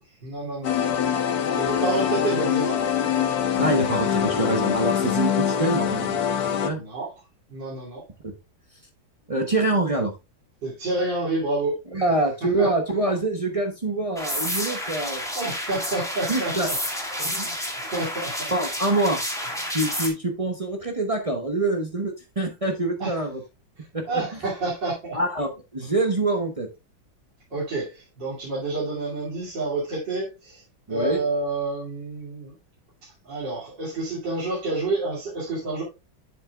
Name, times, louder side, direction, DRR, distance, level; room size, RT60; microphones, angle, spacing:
voice 1, 0.2-0.7 1.6-2.8 6.7-7.1 7.5-8.0 10.6-11.8 12.6-12.7 15.4-16.8 17.1-18.5 23.0-23.2 24.1-25.2 27.5-30.6 30.9-32.5 33.0-35.8, right 2 dB, 60° right, 3.5 m, -29 dB
sound 1, 0.6-6.7, left 8 dB, 60° left, 1.2 m, -24 dB
voice 2, 3.6-6.8 8.2-8.3 9.3-10.1 11.9-15.2 16.3-16.7 17.2-17.5 18.5-19.2 19.7-23.4 23.9-24.0 25.1-26.7 30.9-31.2, right 2 dB, 40° right, 0.5 m, -25 dB
sound 2, 14.2-20.1, equal, ahead, 1.7 m, -30 dB
7.5 x 7.5 x 2.4 m
omnidirectional pair, 2.2 m